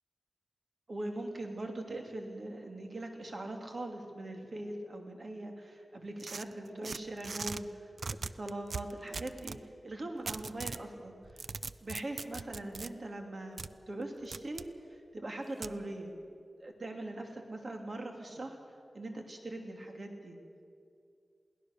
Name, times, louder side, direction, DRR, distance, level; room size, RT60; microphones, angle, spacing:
voice 1, 0.9-9.6 9.8-11.5 11.8-16.1 16.6-18.6 18.9-20.4, right 1 dB, 50° right, 3 dB, 2.8 m, -41 dB
sound 1, 6.2-7.6 8.0-9.6 10.3-10.8 11.2-12.9 13.6-13.7 14.3-14.7 15.6-15.8, right 4 dB, 65° right, 0.5 m, -40 dB
22.0 x 18.0 x 6.7 m, 2.4 s
wide cardioid pair, 75°, 0 cm